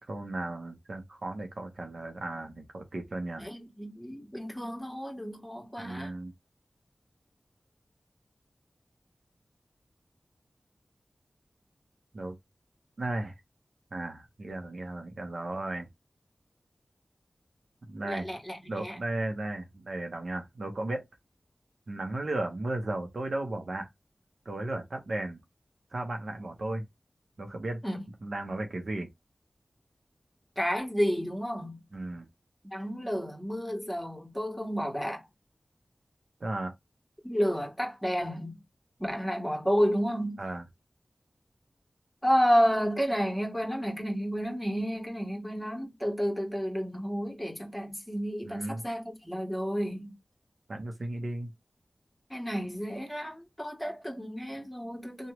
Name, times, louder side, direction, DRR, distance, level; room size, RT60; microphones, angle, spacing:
voice 1, 0.0-3.5 5.8-6.3 12.1-12.4 13.0-13.3 13.9-15.9 17.9-18.3 18.7-21.0 21.9-23.9 24.4-25.4 25.9-26.8 27.4-27.8 28.2-29.1 31.9-32.3 36.4-36.7 40.4-40.6 48.5-48.8 50.7-51.5, right 2 dB, 70° right, 0.9 m, -35 dB
voice 2, 3.4-6.1 18.0-19.0 27.8-28.1 30.5-31.8 32.7-35.2 37.2-38.5 39.0-40.4 42.2-50.2 52.3-55.3, equal, 10° left, 1.6 m, -31 dB
3.0 x 2.4 x 3.0 m
cardioid pair, 45°, 0 cm